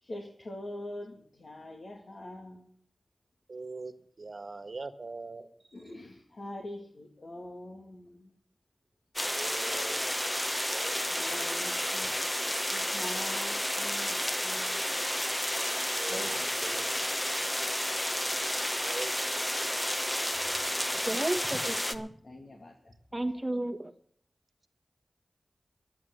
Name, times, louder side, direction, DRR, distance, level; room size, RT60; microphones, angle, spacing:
voice 1, 0.0-2.6 5.7-8.3 11.1-12.1 12.7-14.9 16.1-17.1 22.2-22.9, left 1 dB, 70° left, 1 dB, 2.1 m, -44 dB
voice 2, 3.5-5.5 9.2-10.1 10.7-11.0 15.9-16.9 18.8-19.4 21.5-21.6, right 3 dB, 65° right, 9 dB, 1.5 m, -42 dB
sound 1, 9.2-22.0, equal, 15° left, 1.2 m, -31 dB
voice 3, 21.1-22.1 23.1-23.9, right 1 dB, 20° right, 6 dB, 1.7 m, -32 dB
11.0 x 9.4 x 9.5 m, 0.62 s
wide cardioid pair, 50°, 0 cm